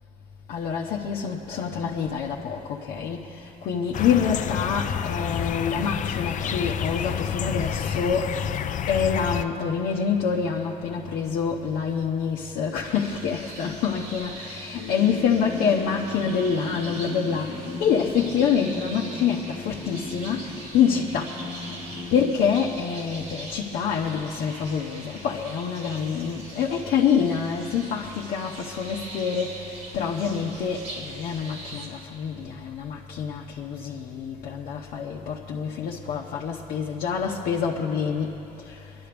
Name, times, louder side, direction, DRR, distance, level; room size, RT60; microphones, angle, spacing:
voice 1, 0.5-8.4 8.9-21.4 21.7-38.9, left 7 dB, 85° left, -3 dB, 0.9 m, -26 dB
sound 1, 3.9-9.4, left 8 dB, 55° left, 0.5 m, -29 dB
sound 2, 12.8-31.9, right 2 dB, 85° right, 3.5 m, -42 dB
sound 3, 14.7-23.5, left 2 dB, 15° right, 1.3 m, -38 dB
23.0 x 12.0 x 3.4 m, 3.0 s
cardioid pair, 95°, 15 cm